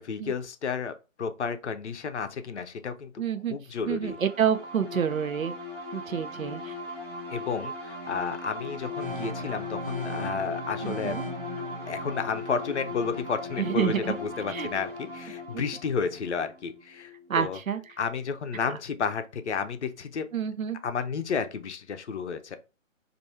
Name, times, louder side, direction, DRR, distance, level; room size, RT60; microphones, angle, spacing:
voice 1, 0.0-3.1 3.5-4.2 6.6-6.7 7.3-11.2 11.9-17.6 18.0-20.3 20.8-22.6, left 5 dB, 60° left, 0.6 m, -32 dB
voice 2, 3.2-3.5 3.9-5.5 5.9-6.7 10.8-11.2 13.6-14.1 14.5-14.7 17.3-17.8 20.3-20.8, right 8 dB, 85° right, 0.7 m, -28 dB
sound 1, 4.0-17.5, left 2 dB, 20° right, 2.0 m, -39 dB
sound 2, 9.0-14.9, equal, 45° right, 0.5 m, -39 dB
4.5 x 2.6 x 2.7 m
hypercardioid pair, 155°, 40 cm